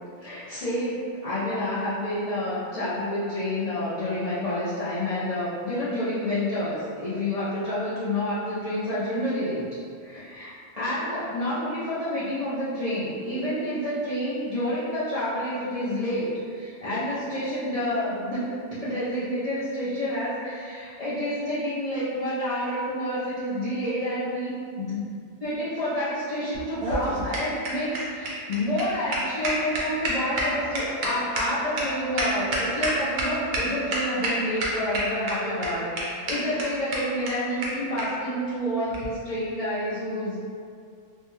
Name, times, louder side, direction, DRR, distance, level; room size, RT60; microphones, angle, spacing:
voice 1, 0.2-1.0 1.2-9.7 10.0-25.0 25.4-40.4, left 1 dB, 65° left, -12 dB, 0.3 m, -29 dB
sound 1, 26.5-33.2 33.5-33.6 33.9-34.3 34.6-35.3 35.6-35.7 36.0-36.1 36.3-36.4 36.6-36.7 36.9-37.0 37.3-37.4 37.6-37.7 38.0-38.1 38.9-39.1, right 2 dB, 60° right, 0.7 m, -28 dB
Wind instrument woodwind instrument, 29.6-34.3, right 2 dB, 90° right, 1.0 m, -45 dB
2.5 x 2.1 x 3.0 m, 2.3 s
omnidirectional pair, 1.4 m